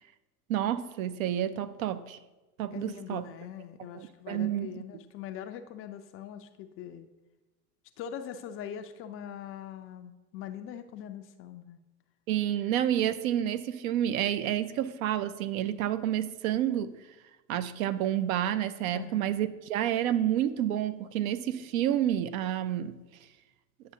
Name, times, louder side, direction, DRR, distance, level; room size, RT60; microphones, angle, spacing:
voice 1, 0.5-2.2 2.6-3.3 3.9-4.8 12.3-16.9 17.5-23.0, right 11 dB, 65° right, 12 dB, 0.6 m, -29 dB
voice 2, 2.7-7.1 8.0-11.8 18.9-19.2, left 9 dB, 30° left, 9 dB, 0.4 m, -42 dB
9.5 x 6.2 x 2.7 m, 1.1 s
hypercardioid pair, 85°, 45 cm